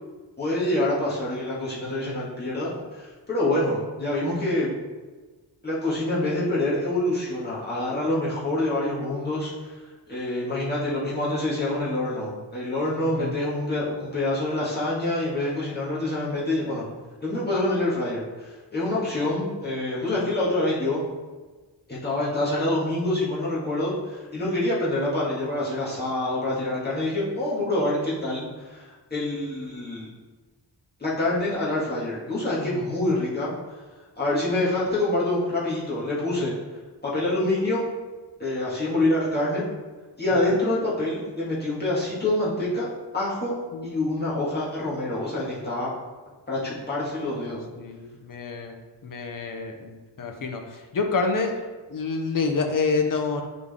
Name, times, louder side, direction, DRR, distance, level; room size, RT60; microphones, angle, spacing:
voice 1, 0.4-4.7 5.6-9.7 10.1-16.8 17.2-21.0 21.9-28.8 29.1-30.1 31.0-33.5 34.2-36.5 37.0-37.9 38.4-39.6 40.2-42.9 43.1-43.5 43.8-45.9 46.5-47.6, left 1 dB, 20° left, -8 dB, 2.0 m, -26 dB
voice 2, 13.0-13.3 32.6-32.8 43.7-44.0 47.8-48.8 49.0-51.6 51.9-53.4, left 4 dB, 45° left, 3 dB, 0.8 m, -28 dB
7.8 x 4.0 x 3.6 m, 1.3 s
wide cardioid pair, 150°, 44 cm